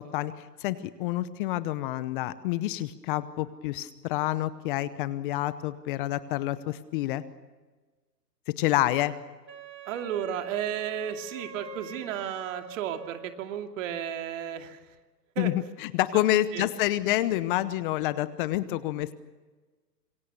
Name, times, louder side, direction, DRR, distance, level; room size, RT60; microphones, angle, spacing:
voice 1, 0.0-7.2 8.5-9.2 15.4-19.1, left 15 dB, 30° left, 15 dB, 0.9 m, -28 dB
Wind instrument woodwind instrument, 9.5-13.6, right 4 dB, 90° right, 3.0 m, -45 dB
voice 2, 9.9-14.8 15.4-15.5 16.1-16.7, right 9 dB, 50° right, 5 dB, 2.7 m, -33 dB
26.5 x 23.5 x 7.0 m, 1.3 s
hypercardioid pair, 135°, 50 cm